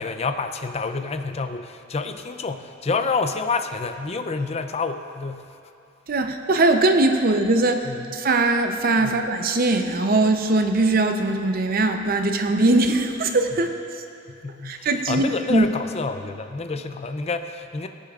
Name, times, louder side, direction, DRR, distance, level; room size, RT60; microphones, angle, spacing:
voice 1, 0.0-5.6 7.8-8.2 9.0-9.2 14.3-17.9, left 4 dB, 35° left, 8 dB, 0.5 m, -28 dB
voice 2, 6.1-7.8 8.1-13.7 14.6-15.2 15.5-15.6, right 2 dB, 50° right, 6 dB, 0.7 m, -20 dB
19.0 x 8.5 x 2.4 m, 2.5 s
head